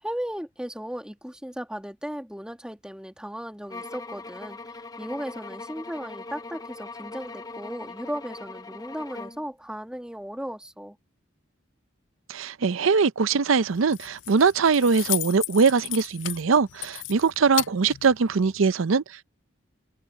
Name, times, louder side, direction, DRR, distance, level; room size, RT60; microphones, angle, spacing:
voice 1, 0.0-4.6 5.0-11.0, equal, 5° right, 2.0 m, -36 dB
sound 1, 3.7-9.5, left 3 dB, 20° left, 0.6 m, -40 dB
voice 2, 12.3-19.2, right 5 dB, 85° right, 0.6 m, -22 dB
Keys jangling, 13.7-18.7, left 18 dB, 65° left, 0.3 m, -35 dB
head